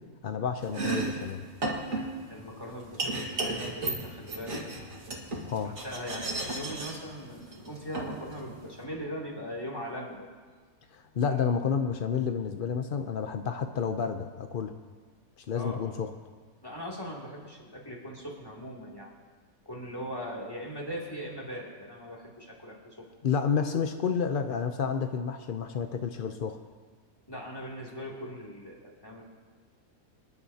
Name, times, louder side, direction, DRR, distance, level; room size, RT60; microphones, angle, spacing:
voice 1, 0.2-1.4 5.4-5.7 10.9-14.7 15.4-16.1 23.2-26.6, left 6 dB, 70° left, 7 dB, 0.5 m, -30 dB
Domestic sounds home sounds, 0.6-8.8, right 2 dB, 55° right, 2.2 m, -35 dB
voice 2, 2.3-5.0 5.6-10.3 15.5-15.9 16.6-19.1 19.6-23.1 27.3-29.2, equal, 15° left, -3 dB, 2.7 m, -40 dB
26.0 x 11.0 x 2.8 m, 1.5 s
omnidirectional pair, 1.7 m